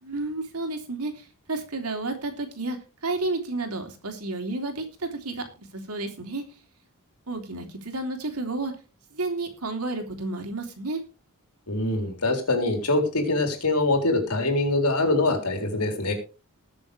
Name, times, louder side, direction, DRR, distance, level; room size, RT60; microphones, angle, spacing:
voice 1, 0.0-2.8 3.0-5.5 5.7-6.4 7.3-8.7 9.1-11.0, right 2 dB, 90° right, 4 dB, 3.4 m, -31 dB
voice 2, 11.7-16.1, left 2 dB, 85° left, 4 dB, 4.0 m, -24 dB
20.5 x 7.1 x 3.4 m, 0.32 s
head